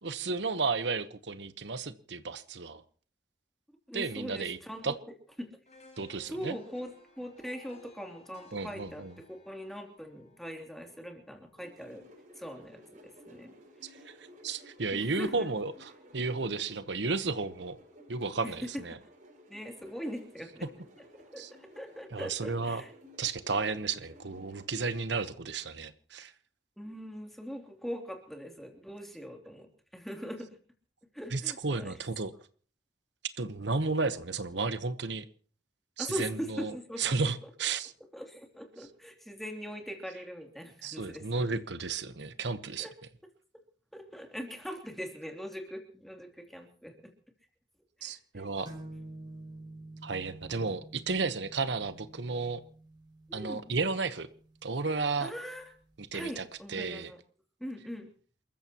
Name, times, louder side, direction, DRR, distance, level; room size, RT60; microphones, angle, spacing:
voice 1, 0.0-2.8 3.9-4.6 4.8-4.9 6.0-6.6 8.5-9.1 13.8-17.8 18.1-19.0 20.6-20.7 21.4-21.5 22.1-22.8 23.2-26.3 31.3-32.3 33.4-35.2 36.0-37.9 40.8-42.9 48.0-48.7 50.0-52.6 53.3-54.3 54.6-55.3 56.0-57.1, right 4 dB, 70° right, 12 dB, 1.0 m, -33 dB
voice 2, 3.9-4.9 5.4-5.6 6.3-12.1 12.4-13.5 14.9-15.5 18.4-18.8 19.5-20.7 21.1-22.9 26.8-30.5 31.1-31.9 36.0-37.0 37.4-37.5 38.1-41.3 42.8-42.9 43.9-47.1 48.0-48.5 53.3-53.7 55.2-55.6 56.1-57.2 57.6-58.1, equal, ahead, 4 dB, 2.9 m, -41 dB
sound 1, 5.7-11.7 12.1-12.2, left 3 dB, 35° left, 5.3 m, -58 dB
sound 2, 11.6-24.9, equal, 40° right, 6.0 m, -55 dB
sound 3, 48.6-56.1, right 2 dB, 25° right, 5.6 m, -49 dB
28.5 x 14.5 x 3.0 m, 0.43 s
head